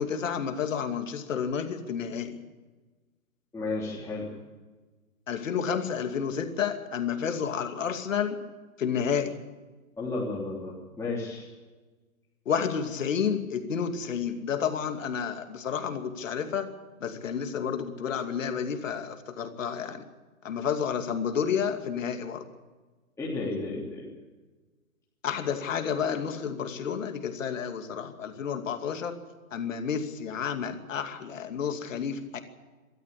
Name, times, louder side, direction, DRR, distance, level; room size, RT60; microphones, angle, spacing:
voice 1, 0.0-2.4 5.3-8.4 8.8-9.4 12.5-16.7 17.0-20.0 20.4-22.4 25.2-29.2 29.5-32.4, left 7 dB, 60° left, 7 dB, 2.6 m, -30 dB
voice 2, 3.5-4.3 10.0-11.5 23.2-24.1, left 3 dB, 5° left, -7 dB, 3.5 m, -33 dB
22.5 x 13.5 x 8.5 m, 1.3 s
figure-of-eight pair, 125°, 44 cm